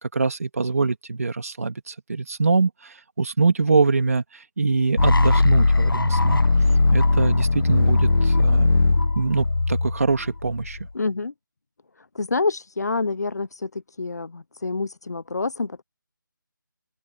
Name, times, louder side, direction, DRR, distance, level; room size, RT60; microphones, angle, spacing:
voice 1, 0.0-6.4 6.9-8.7 9.2-10.8, right 4 dB, 45° right, 2.4 m, -24 dB
sound 1, 5.0-10.9, left 3 dB, 90° left, 1.2 m, -19 dB
voice 2, 10.9-11.3 12.1-15.8, left 3 dB, 50° left, 0.9 m, -27 dB
open air
figure-of-eight pair, 175°, 11 cm